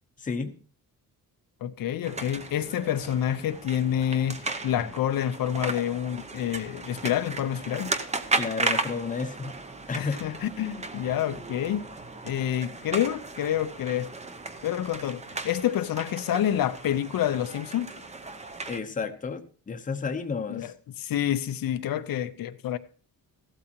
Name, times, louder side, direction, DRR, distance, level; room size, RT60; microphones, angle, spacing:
voice 1, 0.2-0.5 8.4-9.5 9.9-10.2 18.7-20.7, left 5 dB, 25° left, 0.8 m, -32 dB
voice 2, 1.6-7.9 10.0-11.8 12.2-14.1 14.6-17.9 20.5-22.8, left 10 dB, 75° left, 0.8 m, -28 dB
sound 1, 2.0-18.8, right 3 dB, 20° right, 0.7 m, -35 dB
15.0 x 12.5 x 2.9 m
wide cardioid pair, 170°, 35 cm